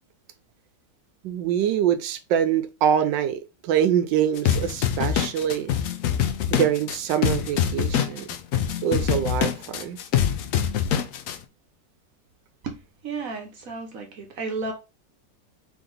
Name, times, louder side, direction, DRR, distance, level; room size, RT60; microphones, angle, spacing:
voice 1, 1.2-5.7 6.5-8.3 8.8-10.0, right 9 dB, 80° right, 1.3 m, -24 dB
sound 1, 4.4-11.4, left 9 dB, 80° left, 0.7 m, -24 dB
voice 2, 12.6-14.7, right 4 dB, 55° right, 1.1 m, -33 dB
3.6 x 3.4 x 3.7 m
omnidirectional pair, 2.0 m